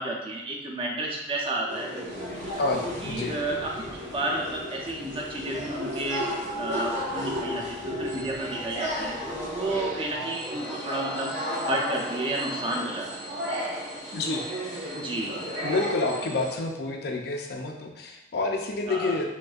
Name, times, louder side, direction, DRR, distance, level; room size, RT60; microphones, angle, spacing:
voice 1, 0.0-1.9 2.8-6.3 6.6-11.3 11.6-13.3 14.9-15.5 18.9-19.2, right 2 dB, 30° right, -2 dB, 0.6 m, -31 dB
sound 1, 1.7-16.6, equal, 85° right, 1.3 m, -33 dB
sound 2, 2.3-10.2, left 1 dB, 85° left, 0.8 m, -46 dB
voice 2, 2.6-3.4 14.1-14.5 15.6-19.3, left 3 dB, 60° left, 2 dB, 0.5 m, -29 dB
5.2 x 2.7 x 2.4 m, 0.96 s
head